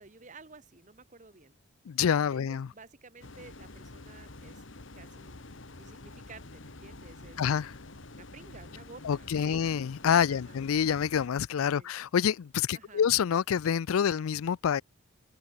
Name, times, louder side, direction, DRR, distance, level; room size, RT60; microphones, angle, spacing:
voice 1, 0.0-1.5 2.1-4.6 4.9-5.5 5.8-7.4 8.1-9.6 10.3-10.7 11.7-11.9 12.7-13.1, right 4 dB, 35° right, 1.2 m, -53 dB
voice 2, 1.9-2.7 7.4-7.7 9.0-14.8, left 8 dB, 90° left, 0.4 m, -27 dB
sound 1, 3.2-11.3, left 2 dB, 65° left, 1.7 m, -48 dB
head